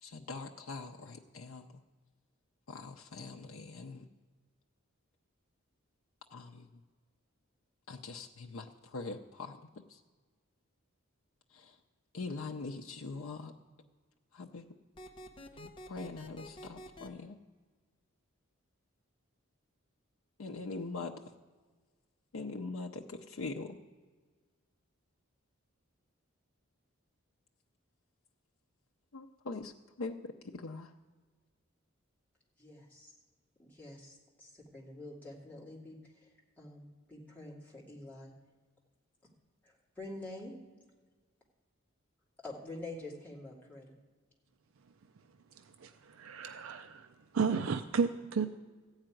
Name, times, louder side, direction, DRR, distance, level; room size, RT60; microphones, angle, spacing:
voice 1, 0.0-1.8 2.7-4.1 6.3-6.8 7.9-10.0 11.5-11.8 12.1-13.5 14.3-14.7 15.5-17.4 20.4-21.3 22.3-23.8 29.1-30.9, left 3 dB, 80° left, 1 dB, 0.6 m, -43 dB
sound 1, 15.0-17.1, equal, 25° left, 0.9 m, -48 dB
voice 2, 32.6-33.1 33.6-36.3 36.6-38.3 39.6-40.6 42.4-44.0, left 2 dB, 10° left, -5 dB, 2.3 m, -47 dB
voice 3, 45.6-47.1 47.3-48.5, right 5 dB, 75° right, 9 dB, 0.5 m, -33 dB
14.5 x 4.9 x 9.0 m, 1.4 s
head